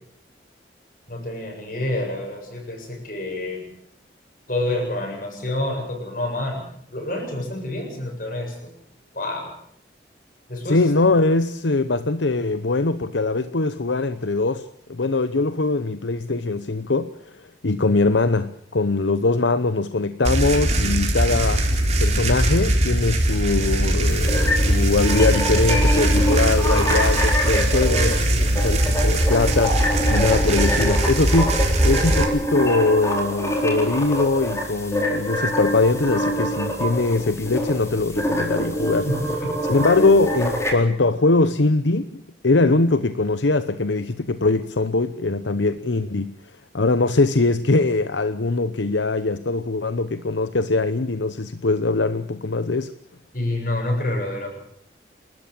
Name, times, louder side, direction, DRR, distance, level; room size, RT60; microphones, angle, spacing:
voice 1, 1.1-3.6 4.5-6.6 6.9-8.5 9.2-9.5 10.5-10.8 53.3-54.5, left 1 dB, 50° left, 7.7 m, -27 dB
voice 2, 10.6-46.3 46.7-52.9, left 3 dB, 90° left, 0.9 m, -22 dB
sound 1, 20.2-32.2, right 1 dB, 40° right, 3.9 m, -20 dB
sound 2, 24.1-40.7, equal, 15° left, 4.4 m, -25 dB
29.0 x 13.5 x 8.7 m
head